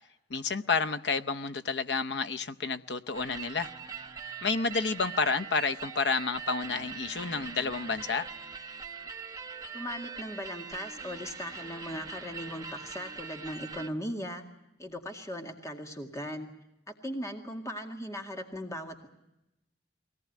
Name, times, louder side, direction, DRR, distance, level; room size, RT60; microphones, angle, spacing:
voice 1, 0.3-3.7 4.4-8.3, left 4 dB, 70° left, 12 dB, 0.8 m, -30 dB
sound 1, 3.1-13.9, right 6 dB, 20° right, 1.3 m, -42 dB
voice 2, 9.7-14.4 14.8-16.5 16.9-19.1, equal, 20° left, 4 dB, 2.1 m, -38 dB
23.0 x 18.5 x 9.3 m, 0.90 s
head